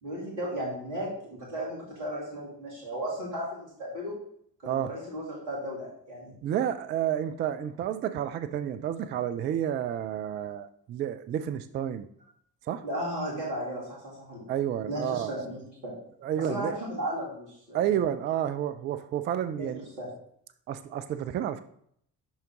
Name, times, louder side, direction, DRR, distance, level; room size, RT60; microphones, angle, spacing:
voice 1, 0.0-4.2 4.6-6.3 12.8-14.4 14.9-16.0 16.4-17.9 19.5-19.7 20.0-20.1, equal, 80° right, -5 dB, 2.6 m, -35 dB
voice 2, 6.4-12.1 12.6-12.8 14.5-15.3 16.2-16.8 17.7-19.9 20.7-21.6, right 10 dB, 25° right, 11 dB, 0.3 m, -30 dB
6.8 x 5.7 x 3.6 m, 0.67 s
figure-of-eight pair, 45°, 50 cm